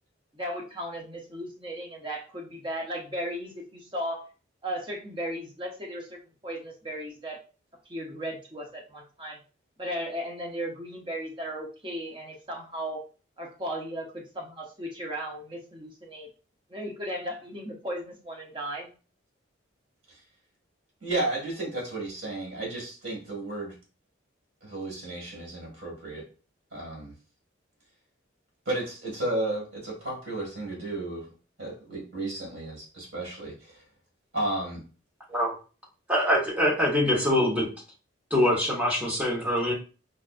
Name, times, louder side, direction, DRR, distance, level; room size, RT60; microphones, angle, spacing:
voice 1, 0.3-4.2 4.6-7.4 7.9-9.4 9.8-13.0 13.4-16.3 16.7-18.9, equal, 25° right, 0 dB, 0.6 m, -36 dB
voice 2, 21.0-23.7 24.6-26.3 26.7-27.1 28.7-31.3 31.6-33.8 34.3-34.8, right 2 dB, 55° right, -3 dB, 1.8 m, -33 dB
voice 3, 36.1-37.7 38.3-39.7, left 1 dB, 5° right, -4 dB, 1.0 m, -24 dB
5.2 x 2.4 x 2.4 m, 0.35 s
head